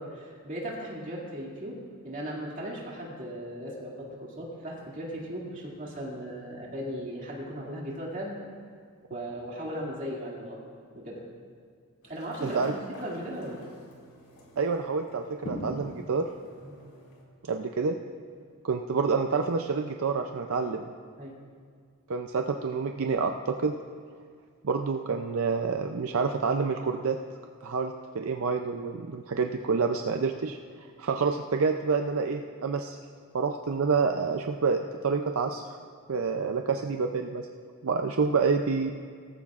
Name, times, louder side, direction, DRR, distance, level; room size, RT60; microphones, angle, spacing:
voice 1, 0.0-8.4 9.1-10.6 10.9-11.2 12.0-13.7 16.6-16.7 21.2-21.3, equal, 35° right, -4 dB, 2.4 m, -37 dB
sound 1, 12.0-17.2, left 1 dB, 75° left, 2.5 m, -45 dB
voice 2, 12.4-12.7 14.6-16.3 17.4-18.0 18.6-20.8 22.1-23.7 24.6-27.2 27.6-30.6 31.0-33.0 33.3-35.8 36.1-37.5 37.8-38.9, right 5 dB, 65° right, 4 dB, 0.5 m, -28 dB
17.0 x 14.5 x 2.5 m, 2.1 s
head